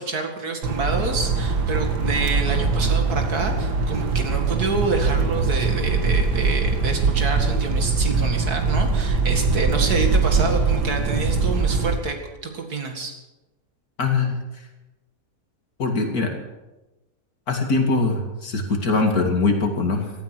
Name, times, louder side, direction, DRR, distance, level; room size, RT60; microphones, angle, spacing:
voice 1, 0.0-13.2, right 3 dB, 65° right, 4 dB, 2.6 m, -27 dB
sound 1, 0.6-12.0, right 4 dB, 85° right, 2.1 m, -22 dB
voice 2, 14.0-14.4 15.8-16.3 17.5-20.1, left 3 dB, 65° left, 3 dB, 2.8 m, -22 dB
17.0 x 13.5 x 6.2 m, 1.1 s
omnidirectional pair, 1.7 m